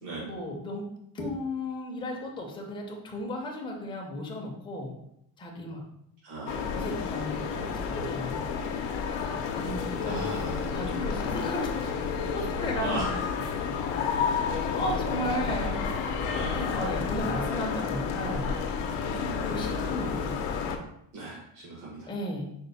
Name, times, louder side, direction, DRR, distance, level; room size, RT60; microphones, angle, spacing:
voice 1, 0.0-0.9 1.1-4.9 5.4-5.8 6.7-8.5 9.5-12.0 12.3-13.1 14.1-15.8 16.5-18.5 19.4-20.5 22.1-22.5, left 1 dB, 10° left, -1 dB, 0.5 m, -35 dB
voice 2, 6.2-6.9 8.5-8.8 10.0-11.2 12.8-13.4 15.6-15.8 16.3-16.7 19.0-19.5 21.1-22.1, right 2 dB, 70° right, -6 dB, 1.2 m, -38 dB
sound 1, 6.5-20.8, left 6 dB, 80° left, 0.6 m, -31 dB
4.3 x 2.0 x 4.0 m, 0.75 s
cardioid pair, 150°, 43 cm